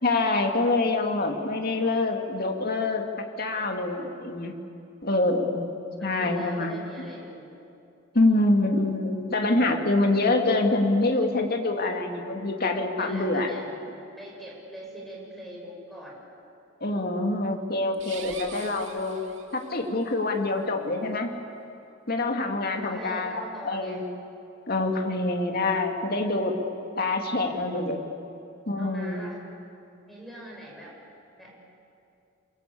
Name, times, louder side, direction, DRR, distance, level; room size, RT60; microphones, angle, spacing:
voice 1, 0.0-3.0 3.4-4.5 5.0-5.7 6.0-6.8 8.1-13.5 16.8-19.2 19.5-21.3 22.1-24.0 24.7-26.5 27.0-28.0 28.7-29.3, left 2 dB, 50° left, 3 dB, 2.3 m, -25 dB
voice 2, 6.0-7.5 13.0-13.7 14.2-16.2 22.8-24.0 28.8-29.4 30.1-30.9 31.4-31.5, equal, ahead, -3 dB, 6.7 m, -42 dB
sound 1, 17.9-19.9, right 7 dB, 65° right, 2.4 m, -44 dB
30.0 x 23.0 x 8.5 m, 2.6 s
head